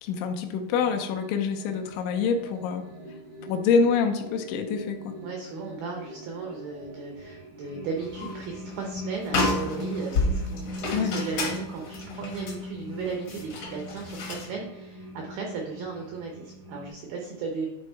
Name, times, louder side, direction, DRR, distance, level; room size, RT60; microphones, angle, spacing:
voice 1, 0.0-2.8 3.4-5.2 10.9-11.2, left 5 dB, 80° left, 6 dB, 2.9 m, -26 dB
sound 1, 0.8-16.9, left 1 dB, 40° right, 0.6 m, -40 dB
voice 2, 5.2-17.7, right 5 dB, 85° right, 1 dB, 2.1 m, -36 dB
sound 2, 8.0-8.5 8.8-8.9 9.2-14.5, left 2 dB, 65° left, 1.5 m, -30 dB
10.5 x 3.6 x 4.5 m, 0.89 s
omnidirectional pair, 5.5 m